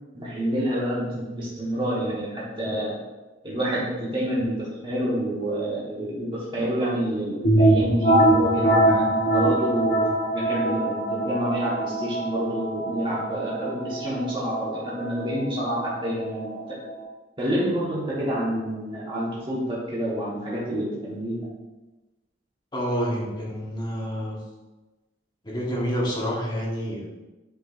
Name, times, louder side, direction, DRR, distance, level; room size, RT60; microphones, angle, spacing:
voice 1, 0.1-3.0 3.4-10.0 10.3-16.8 17.4-21.5, equal, 25° right, -7 dB, 1.5 m, -28 dB
sound 1, 7.4-17.0, right 1 dB, 45° left, 1.2 m, -23 dB
voice 2, 22.7-24.4 25.4-27.1, equal, 25° left, -4 dB, 1.5 m, -28 dB
8.6 x 5.0 x 2.6 m, 1.1 s
head